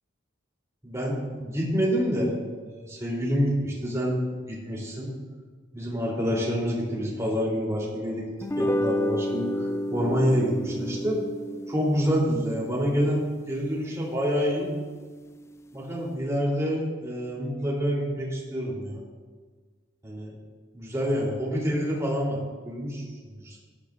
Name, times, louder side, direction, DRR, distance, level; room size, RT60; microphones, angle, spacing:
voice 1, 0.8-2.4 2.6-4.2 4.5-5.1 5.7-8.3 8.6-11.2 11.7-14.7 15.7-19.0 20.0-20.3 20.7-22.4 22.6-23.6, equal, 15° right, -5 dB, 3.9 m, -27 dB
sound 1, 8.4-14.9, equal, 15° left, 0.3 m, -32 dB
16.5 x 12.5 x 2.7 m, 1.5 s
head